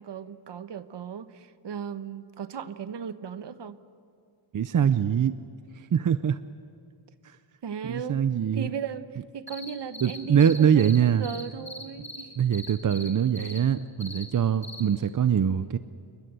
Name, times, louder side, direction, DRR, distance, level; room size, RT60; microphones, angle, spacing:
voice 1, 0.0-3.8 7.6-8.2 8.5-12.3, right 7 dB, 55° right, 12 dB, 1.2 m, -37 dB
voice 2, 4.5-5.3 5.8-6.4 7.2-7.4 7.8-8.7 10.0-11.3 12.4-15.8, right 8 dB, 40° right, 12 dB, 0.6 m, -23 dB
sound 1, 9.5-11.0 11.2-12.2 12.5-13.1 13.3-13.6 14.0-14.2 14.6-14.8, left 1 dB, 15° left, 3.3 m, -40 dB
28.5 x 22.5 x 8.2 m, 2.4 s
wide cardioid pair, 155°, 49 cm